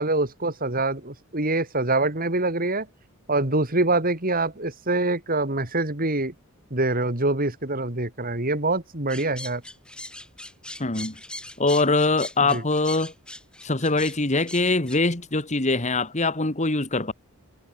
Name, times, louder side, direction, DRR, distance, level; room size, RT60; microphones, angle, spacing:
voice 1, 0.0-2.9 3.3-6.3 6.7-9.6 12.5-12.6, right 2 dB, 40° right, 3.6 m, -25 dB
sound 1, 9.1-15.0, left 1 dB, 5° left, 5.4 m, -40 dB
voice 2, 10.8-11.2 11.6-13.1 13.6-17.1, left 3 dB, 30° left, 2.2 m, -23 dB
head